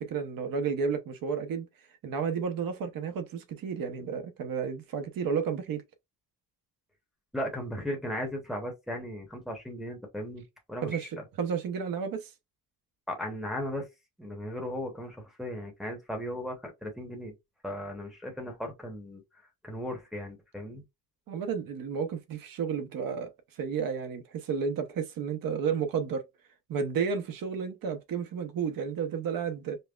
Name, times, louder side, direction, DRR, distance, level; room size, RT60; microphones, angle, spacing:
voice 1, 0.0-1.7 2.0-5.8 10.8-11.1 11.4-12.3 21.3-23.3 23.6-26.3 26.7-29.8, right 6 dB, 65° right, 0.8 m, -32 dB
voice 2, 7.3-11.2 13.1-13.9 14.2-17.3 17.6-19.2 19.6-20.8, equal, ahead, 0.9 m, -36 dB
5.3 x 2.0 x 2.3 m
cardioid pair, 120°, 37 cm